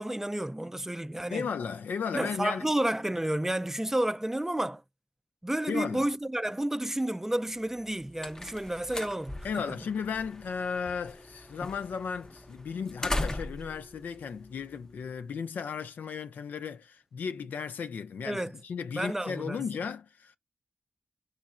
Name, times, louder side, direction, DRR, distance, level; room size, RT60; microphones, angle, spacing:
voice 1, 0.0-1.5 2.1-4.8 5.4-9.4 18.3-18.5 18.9-19.6, right 1 dB, 15° right, 0.4 m, -31 dB
voice 2, 1.3-2.7 5.7-6.1 9.4-20.4, left 6 dB, 85° left, 0.5 m, -35 dB
sound 1, 7.7-15.2, left 1 dB, 20° left, 0.6 m, -39 dB
6.2 x 3.2 x 2.4 m
cardioid pair, 50°, 3 cm